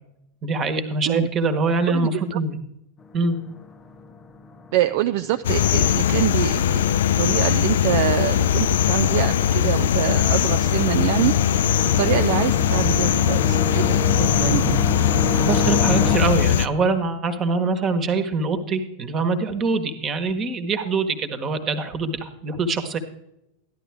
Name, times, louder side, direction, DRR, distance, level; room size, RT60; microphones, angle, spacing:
voice 1, 0.4-2.6 3.1-3.4 15.4-23.0, right 3 dB, 25° right, 10 dB, 1.3 m, -24 dB
voice 2, 1.8-2.4 4.7-11.3 12.0-14.9, right 13 dB, 50° right, 10 dB, 0.3 m, -25 dB
sound 1, 3.0-16.2, left 4 dB, 25° left, 0.8 m, -30 dB
sound 2, 5.4-16.7, left 10 dB, 60° left, 0.3 m, -20 dB
13.5 x 11.0 x 3.5 m, 0.85 s
figure-of-eight pair, 90°, 0 cm